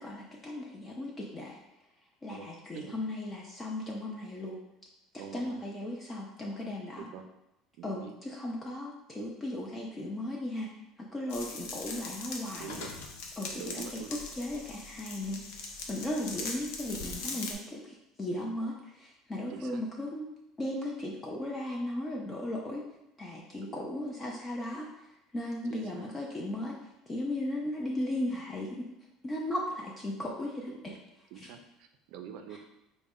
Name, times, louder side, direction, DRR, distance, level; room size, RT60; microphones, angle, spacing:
voice 1, 0.0-1.6 2.2-4.6 5.3-7.1 7.8-10.7 11.1-12.8 13.4-14.0 14.4-15.4 15.9-20.3 20.6-22.9 23.2-25.1 25.3-26.7 27.1-28.8 29.2-30.9 31.4-31.5 32.5-32.6, left 1 dB, 20° left, -2 dB, 0.4 m, -36 dB
voice 2, 5.2-5.6 7.0-7.2 7.8-8.1 12.6-12.9 13.5-14.1 16.4-16.6 19.5-19.8 23.6-23.9 25.7-26.1 30.7-31.0 31.3-32.6, right 9 dB, 65° right, 7 dB, 0.4 m, -45 dB
sound 1, 11.3-17.5, left 3 dB, 75° left, 0.6 m, -41 dB
3.9 x 2.1 x 3.5 m, 0.89 s
cardioid pair, 145°, 0 cm